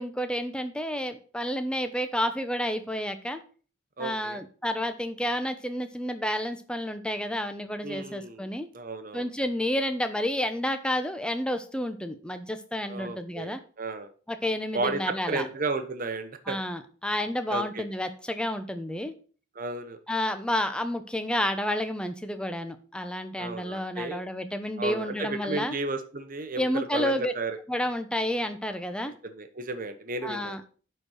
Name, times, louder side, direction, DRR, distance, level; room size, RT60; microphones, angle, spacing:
voice 1, 0.0-3.4 4.0-8.7 9.1-13.6 14.3-15.5 16.5-19.1 20.1-25.7 26.6-27.3 27.7-29.1 30.2-30.7, left 1 dB, 5° left, 8 dB, 0.9 m, -30 dB
voice 2, 4.0-4.4 7.8-9.3 12.9-14.1 14.7-16.6 17.5-17.8 19.5-20.0 23.4-24.2 24.8-27.6 29.2-30.6, right 3 dB, 40° right, 8 dB, 1.1 m, -33 dB
10.5 x 4.6 x 6.4 m, 0.39 s
head